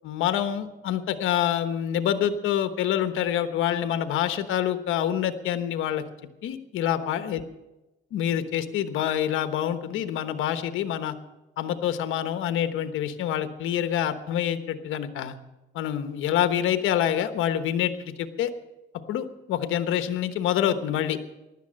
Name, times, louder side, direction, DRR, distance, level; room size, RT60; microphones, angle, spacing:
voice 1, 0.0-6.0 6.4-7.4 8.1-11.2 11.6-15.4 15.7-18.5 19.1-21.2, left 10 dB, 90° left, 9 dB, 1.2 m, -26 dB
15.5 x 11.5 x 6.4 m, 1.0 s
cardioid pair, 90°, 20 cm